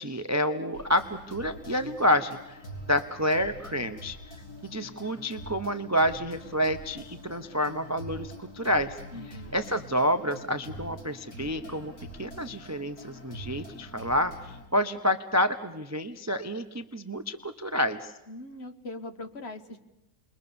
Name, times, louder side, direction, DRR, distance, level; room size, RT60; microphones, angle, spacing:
voice 1, 0.0-2.6 2.9-4.2 4.6-9.0 9.3-11.9 12.2-18.1, equal, 20° right, 9 dB, 0.4 m, -28 dB
sound 1, 0.7-14.6, equal, 60° left, 4.7 m, -44 dB
voice 2, 9.1-9.6 18.3-19.8, left 2 dB, 40° left, 7 dB, 1.5 m, -41 dB
29.5 x 22.0 x 7.0 m, 0.94 s
omnidirectional pair, 1.8 m